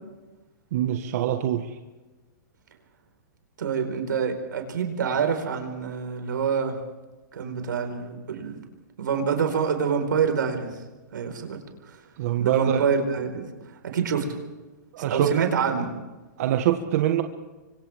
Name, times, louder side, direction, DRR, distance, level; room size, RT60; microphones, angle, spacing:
voice 1, 0.7-1.7 12.2-12.8 14.9-15.3 16.4-17.2, right 11 dB, 50° right, 5 dB, 1.6 m, -24 dB
voice 2, 3.6-6.8 7.3-8.6 9.0-10.8 11.1-11.6 11.9-12.0 12.4-13.5 13.8-14.4 15.0-15.9, right 6 dB, 90° right, 5 dB, 4.7 m, -26 dB
29.5 x 25.0 x 3.6 m, 1.2 s
hypercardioid pair, 155°, 10 cm